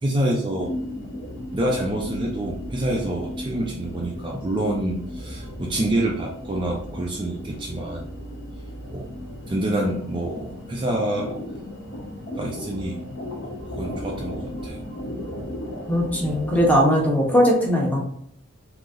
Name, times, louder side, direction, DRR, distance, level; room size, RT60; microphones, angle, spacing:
voice 1, 0.0-0.7 1.5-8.1 8.9-9.1 9.5-11.4 12.4-13.0 13.4-14.8, right 1 dB, 20° right, -1 dB, 0.4 m, -27 dB
sound 1, 0.6-16.8, left 1 dB, 55° left, 0.8 m, -35 dB
voice 2, 15.9-18.0, equal, 5° left, -1 dB, 0.7 m, -19 dB
3.8 x 2.7 x 2.5 m, 0.69 s
head